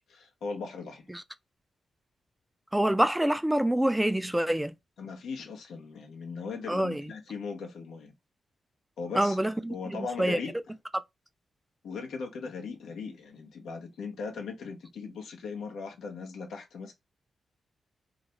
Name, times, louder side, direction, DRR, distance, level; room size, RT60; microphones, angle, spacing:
voice 1, 0.1-1.1 5.0-8.1 9.0-9.4 9.7-10.8 11.8-16.9, left 4 dB, 80° left, 0.7 m, -38 dB
voice 2, 2.7-4.7 6.7-7.0 9.2-9.7 10.2-10.4, right 1 dB, 10° right, 0.3 m, -25 dB
2.4 x 2.1 x 2.9 m
supercardioid pair, 50°, 0 cm